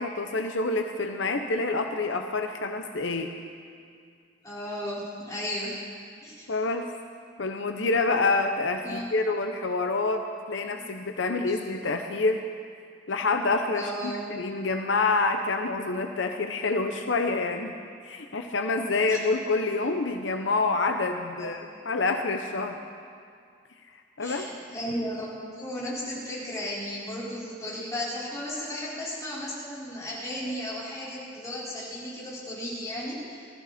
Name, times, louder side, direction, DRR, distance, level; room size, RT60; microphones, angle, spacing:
voice 1, 0.0-3.3 6.5-6.9 7.4-12.4 13.1-17.7 18.0-22.8 24.2-24.5, left 3 dB, 80° left, 5 dB, 0.8 m, -27 dB
voice 2, 4.4-5.8 6.2-6.5 8.8-9.2 10.7-10.9 11.5-11.6 13.7-14.2 19.1-19.2 21.4-21.7 24.2-33.5, equal, 20° left, -8 dB, 4.8 m, -35 dB
20.0 x 14.0 x 4.3 m, 2.2 s
head